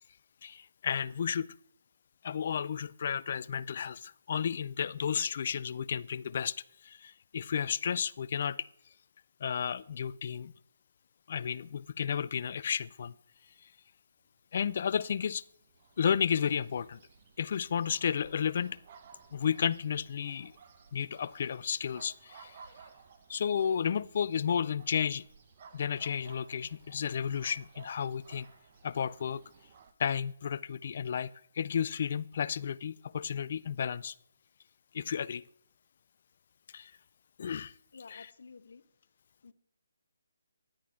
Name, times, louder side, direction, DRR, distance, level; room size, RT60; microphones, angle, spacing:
voice 1, 0.4-1.5 2.2-6.5 6.8-8.6 9.4-10.5 11.3-13.1 13.6-13.7 14.5-15.4 16.0-17.0 17.4-18.8 19.3-20.5 20.9-22.6 23.3-25.2 25.7-28.5 28.8-29.4 30.0-34.1 34.9-35.4 36.7-36.9 37.4-37.7 38.1-38.3, left 7 dB, 45° left, 0.4 m, -32 dB
sound 1, 14.5-29.9, right 6 dB, 40° right, 1.0 m, -57 dB
voice 2, 37.9-38.8 39.4-39.5, left 4 dB, 65° left, 1.2 m, -51 dB
13.5 x 10.5 x 3.6 m
hypercardioid pair, 155°, 0 cm